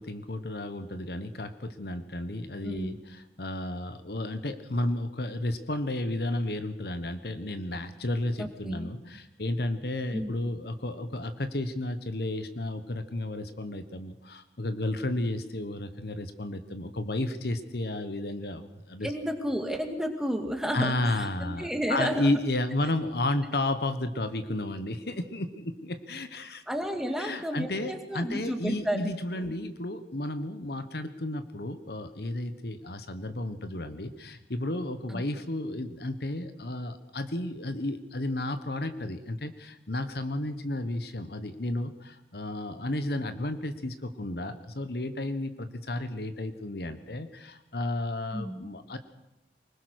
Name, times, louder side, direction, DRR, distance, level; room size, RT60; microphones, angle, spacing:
voice 1, 0.0-19.1 20.7-26.6 27.2-49.0, left 1 dB, 60° left, 10 dB, 1.3 m, -32 dB
voice 2, 2.6-3.0 8.4-8.9 10.1-10.4 19.0-22.3 26.7-29.1 29.4-29.5 35.1-35.2 48.3-48.7, equal, 5° right, 4 dB, 2.1 m, -32 dB
24.0 x 20.5 x 6.4 m, 0.91 s
head